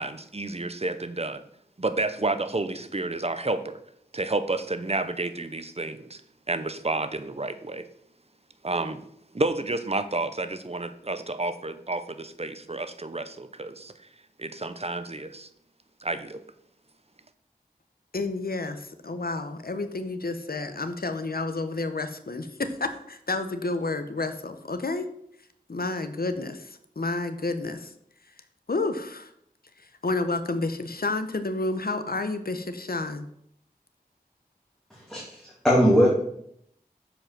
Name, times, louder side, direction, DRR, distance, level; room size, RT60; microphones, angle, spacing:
voice 1, 0.0-1.4 1.8-3.8 4.1-6.2 6.5-7.9 8.6-9.1 9.3-14.1 14.4-15.5 16.0-16.4, right 2 dB, 40° right, 10 dB, 0.8 m, -30 dB
voice 2, 18.1-25.1 25.7-27.9 28.7-29.3 29.8-33.3, left 3 dB, 75° left, 9 dB, 0.8 m, -30 dB
voice 3, 34.9-36.1, equal, 5° left, -5 dB, 2.2 m, -21 dB
7.5 x 5.1 x 5.9 m, 0.72 s
wide cardioid pair, 45°, 16 cm